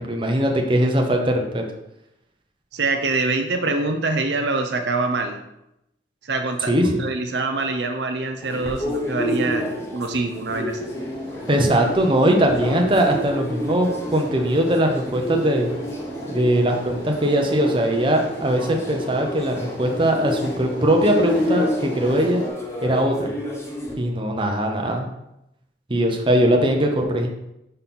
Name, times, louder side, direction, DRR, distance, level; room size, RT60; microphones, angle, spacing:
voice 1, 0.0-1.6 6.7-7.0 11.5-15.7 16.3-22.4 22.8-23.3 24.0-25.1 25.9-27.3, right 1 dB, 30° right, 2 dB, 0.9 m, -20 dB
voice 2, 2.7-5.4 6.2-10.8, right 3 dB, 75° right, 5 dB, 0.7 m, -25 dB
sound 1, 8.4-23.9, left 1 dB, 15° left, 1.2 m, -30 dB
sound 2, 10.7-22.5, equal, 85° left, 2.0 m, -36 dB
5.3 x 4.1 x 5.9 m, 0.85 s
head